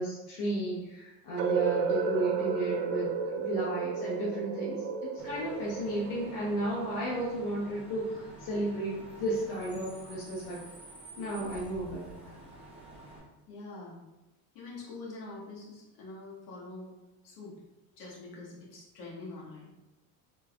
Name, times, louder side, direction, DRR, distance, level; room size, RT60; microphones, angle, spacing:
voice 1, 0.0-10.6 11.2-12.3, right 1 dB, 80° left, -5 dB, 1.0 m, -33 dB
sound 1, 1.4-7.2, right 6 dB, 55° right, 0.5 m, -33 dB
Bus / Idling / Screech, 5.2-13.2, right 1 dB, 5° right, 1.0 m, -49 dB
voice 2, 13.5-14.0 14.5-16.9 17.2-17.6 18.0-19.7, left 3 dB, 60° left, -4 dB, 1.4 m, -45 dB
3.2 x 3.1 x 2.3 m, 1.0 s
supercardioid pair, 100°, 46 cm